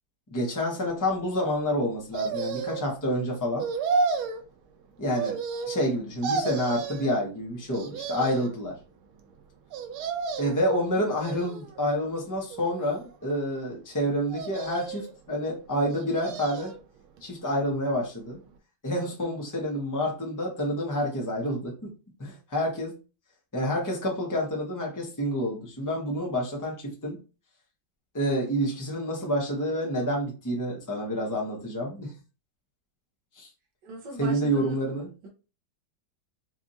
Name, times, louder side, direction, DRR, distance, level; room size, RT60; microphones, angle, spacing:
voice 1, 0.3-3.7 5.0-5.4 5.7-8.7 10.4-16.7 17.2-18.4 18.8-21.9 22.2-23.0 23.5-27.2 28.1-32.1 33.4-33.5 34.2-35.1, equal, 15° left, -1 dB, 0.7 m, -28 dB
sound 1, 2.1-2.9 3.6-4.4 5.1-5.9 6.2-7.1 7.7-8.5 9.7-10.6 11.2-11.9 12.5-13.3 14.3-15.1 15.9-16.8 17.2-17.3, right 5 dB, 90° right, 1.5 m, -32 dB
voice 2, 33.8-34.8 35.2-35.3, right 1 dB, 65° right, 1 dB, 1.3 m, -39 dB
4.7 x 2.5 x 2.8 m, 0.32 s
omnidirectional pair, 2.2 m